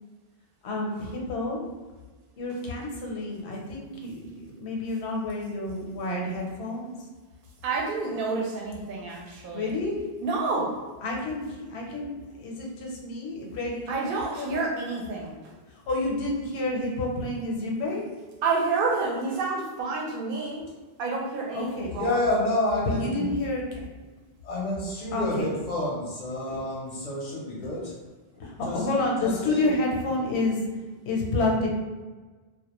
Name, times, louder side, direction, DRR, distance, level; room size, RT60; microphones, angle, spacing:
voice 1, 0.6-1.6 2.4-6.9 9.5-10.0 11.0-14.7 15.9-18.0 21.5-21.9 22.8-23.9 25.1-25.5 27.5-27.7 28.4-30.6 31.1-31.7, left 2 dB, 90° left, -1 dB, 0.9 m, -29 dB
voice 2, 7.6-9.8 10.2-10.7 13.9-15.3 18.4-20.6 21.0-22.2, right 4 dB, 65° right, 0 dB, 0.7 m, -29 dB
voice 3, 22.0-23.3 24.5-27.8 28.6-28.7 29.2-29.6, left 1 dB, 55° left, -4 dB, 0.5 m, -29 dB
2.3 x 2.1 x 2.9 m, 1.3 s
omnidirectional pair, 1.1 m